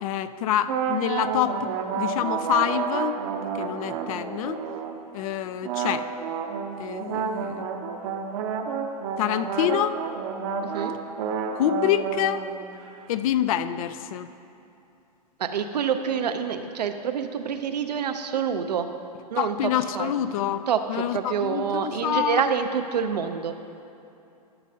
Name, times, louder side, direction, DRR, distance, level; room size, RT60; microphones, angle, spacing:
voice 1, 0.0-3.2 3.5-4.6 5.1-6.1 6.8-7.7 9.2-10.0 11.5-12.4 13.1-14.3 19.4-20.6 20.9-22.4, left 10 dB, 60° left, 13 dB, 0.4 m, -26 dB
sound 1, 0.6-5.0 5.6-12.9, right 6 dB, 50° right, 0.7 m, -30 dB
voice 2, 10.6-10.9 15.4-18.9 19.3-19.6 19.9-20.1 20.7-23.5, right 7 dB, 85° right, 7 dB, 0.6 m, -27 dB
11.5 x 6.4 x 2.7 m, 2.7 s
hypercardioid pair, 120°, 21 cm